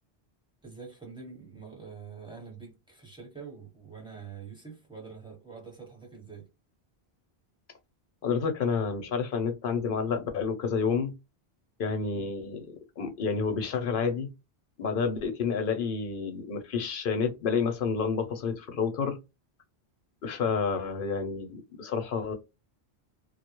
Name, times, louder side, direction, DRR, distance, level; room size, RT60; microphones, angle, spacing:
voice 1, 0.6-6.5 12.1-12.3, right 5 dB, 5° right, 1.1 m, -45 dB
voice 2, 8.2-11.1 11.8-14.3 14.8-19.2 20.2-22.3, left 5 dB, 60° left, 0.7 m, -29 dB
2.2 x 2.0 x 2.8 m
omnidirectional pair, 1.1 m